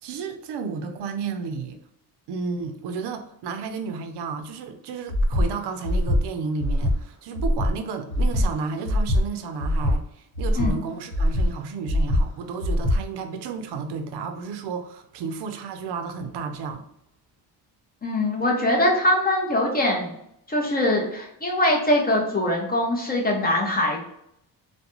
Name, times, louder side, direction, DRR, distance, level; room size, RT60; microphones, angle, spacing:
voice 1, 0.0-1.8 2.3-16.9, right 5 dB, 70° right, 0.5 m, -32 dB
Breathing, 5.1-5.5 5.8-6.2 6.6-7.0 7.3-7.7 8.1-8.5 8.8-9.2 9.6-10.0 10.3-10.7 11.1-11.5 11.9-12.2 12.6-13.0, left 1 dB, 65° left, 1.2 m, -22 dB
voice 2, 18.0-20.2 20.5-24.0, left 1 dB, 20° left, 0.6 m, -22 dB
2.4 x 2.1 x 2.9 m
cardioid pair, 110°, 42 cm